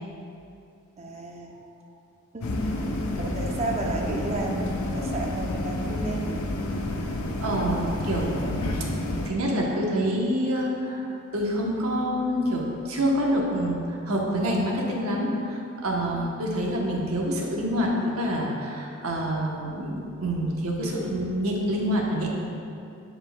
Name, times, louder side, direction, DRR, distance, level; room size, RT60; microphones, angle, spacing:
voice 1, 1.0-1.9 2.3-6.5 16.1-16.5, right 2 dB, 30° right, 0 dB, 0.6 m, -33 dB
sound 1, 2.4-9.3, left 1 dB, 80° left, 0.6 m, -30 dB
voice 2, 7.4-8.6 9.2-22.4, equal, 80° right, -2 dB, 1.0 m, -27 dB
10.5 x 4.4 x 2.3 m, 2.6 s
head